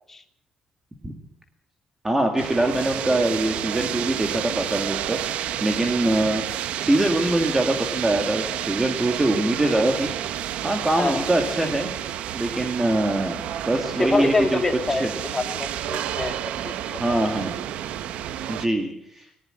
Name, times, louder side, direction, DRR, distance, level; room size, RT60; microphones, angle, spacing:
voice 1, 2.0-6.5 6.8-10.1 10.6-11.9 12.3-14.6 14.9-15.1 17.0-17.6 18.5-19.3, right 1 dB, 15° right, 4 dB, 2.1 m, -23 dB
sound 1, 2.4-18.7, right 11 dB, 85° right, 1.1 m, -30 dB
voice 2, 14.0-17.0, left 3 dB, 15° left, 6 dB, 2.3 m, -26 dB
19.5 x 19.0 x 7.8 m, 0.67 s
cardioid pair, 165°, 2 cm